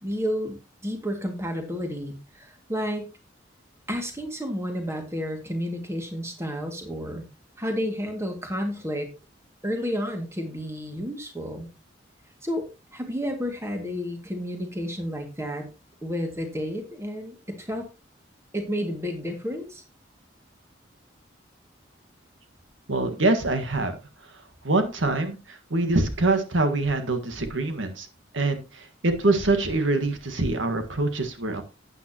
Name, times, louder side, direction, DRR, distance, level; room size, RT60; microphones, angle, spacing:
voice 1, 0.0-3.1 3.9-7.2 7.6-9.1 9.6-11.7 12.4-15.7 16.0-17.9 18.5-19.8, equal, 15° right, 4 dB, 2.2 m, -31 dB
voice 2, 22.9-23.9 24.6-28.1 28.3-31.6, right 2 dB, 85° right, 7 dB, 1.7 m, -24 dB
12.0 x 9.2 x 2.9 m, 0.27 s
head